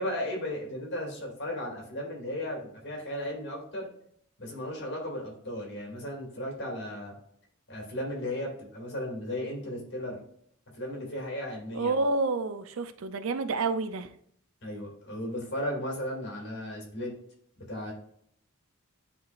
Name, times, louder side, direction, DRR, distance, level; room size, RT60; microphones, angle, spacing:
voice 1, 0.0-3.9 4.4-7.1 7.7-10.2 10.7-11.9 14.6-17.1 17.7-17.9, left 1 dB, 55° left, -1 dB, 2.3 m, -35 dB
voice 2, 11.7-14.1, right 3 dB, 75° right, 11 dB, 0.5 m, -29 dB
10.0 x 3.8 x 2.5 m, 0.68 s
head